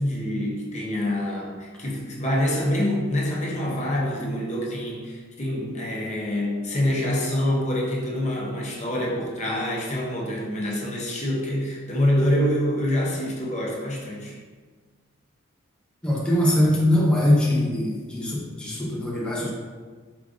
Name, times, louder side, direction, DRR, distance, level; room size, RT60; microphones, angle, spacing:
voice 1, 0.0-14.4, left 1 dB, 35° left, -3 dB, 0.9 m, -26 dB
voice 2, 16.0-19.5, left 1 dB, 5° left, -5 dB, 0.6 m, -22 dB
4.7 x 2.4 x 3.7 m, 1.5 s
head